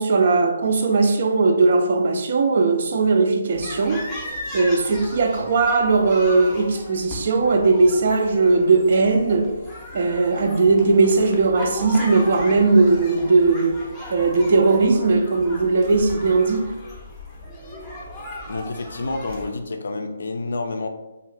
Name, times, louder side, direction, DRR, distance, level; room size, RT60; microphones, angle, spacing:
voice 1, 0.0-4.1 4.5-9.5 9.9-13.8 14.1-16.7, right 3 dB, 45° right, 0.4 m, -18 dB
sound 1, 3.5-19.5, left 1 dB, 10° left, 0.6 m, -37 dB
voice 2, 18.5-20.9, left 3 dB, 55° left, 0.4 m, -29 dB
2.6 x 2.4 x 3.2 m
figure-of-eight pair, 140°, 0 cm